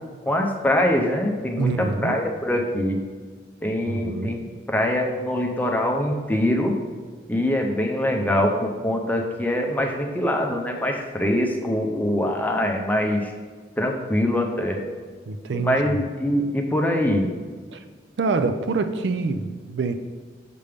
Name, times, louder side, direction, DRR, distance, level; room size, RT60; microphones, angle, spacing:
voice 1, 0.3-3.0 3.6-6.7 7.3-13.3 13.8-14.8 15.5-17.3, left 1 dB, 10° left, 2 dB, 0.6 m, -23 dB
voice 2, 1.6-2.2 3.9-4.5 15.3-16.1 17.7-17.8 18.2-19.9, right 3 dB, 75° right, 9 dB, 0.4 m, -26 dB
6.7 x 5.1 x 3.5 m, 1.6 s
head